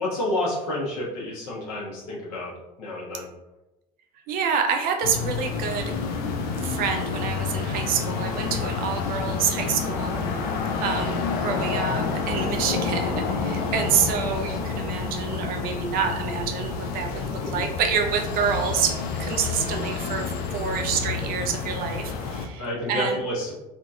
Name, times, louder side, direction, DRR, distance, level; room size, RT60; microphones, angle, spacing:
voice 1, 0.0-2.5 2.8-3.3 11.4-11.6 17.1-17.5 19.7-19.9 22.6-23.5, left 1 dB, 65° left, -5 dB, 1.2 m, -30 dB
voice 2, 4.3-5.9 6.6-10.4 10.8-23.2, right 6 dB, 45° right, 4 dB, 0.5 m, -27 dB
sound 1, 5.0-22.5, left 5 dB, 50° left, 0.5 m, -29 dB
3.6 x 2.8 x 2.4 m, 1.0 s
figure-of-eight pair, 70°, 21 cm